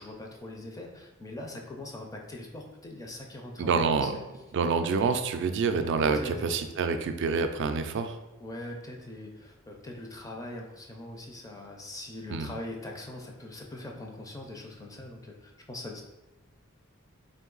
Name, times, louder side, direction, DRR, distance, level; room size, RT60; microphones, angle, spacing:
voice 1, 0.0-4.2 6.0-6.5 8.4-16.0, left 1 dB, 15° left, 1 dB, 0.5 m, -42 dB
voice 2, 3.6-4.2 4.5-8.2 12.3-12.5, right 5 dB, 60° right, 8 dB, 0.4 m, -27 dB
3.6 x 2.7 x 3.8 m, 1.0 s
head